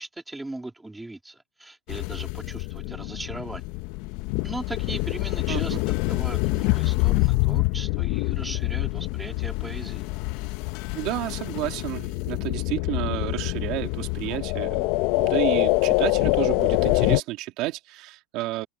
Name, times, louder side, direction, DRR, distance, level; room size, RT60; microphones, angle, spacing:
voice 1, 0.0-3.6 4.4-10.1, right 2 dB, 5° right, 2.2 m, -38 dB
sound 1, 1.9-17.2, left 22 dB, 55° left, 0.6 m, -25 dB
voice 2, 5.5-5.8 10.9-18.7, right 18 dB, 50° right, 2.0 m, -31 dB
supercardioid pair, 145°, 0 cm